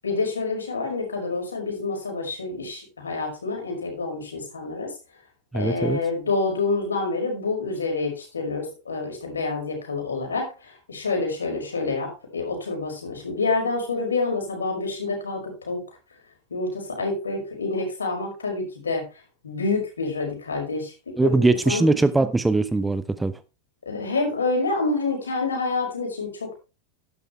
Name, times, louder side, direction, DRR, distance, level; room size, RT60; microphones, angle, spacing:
voice 1, 0.0-4.9 5.5-15.8 16.5-19.1 19.4-20.9 21.2-21.9 23.9-26.6, left 3 dB, 70° left, 5.4 m, -27 dB
voice 2, 5.5-6.0 21.2-23.4, right 3 dB, 10° right, 0.8 m, -21 dB
12.5 x 10.5 x 3.3 m
figure-of-eight pair, 90°, 0 cm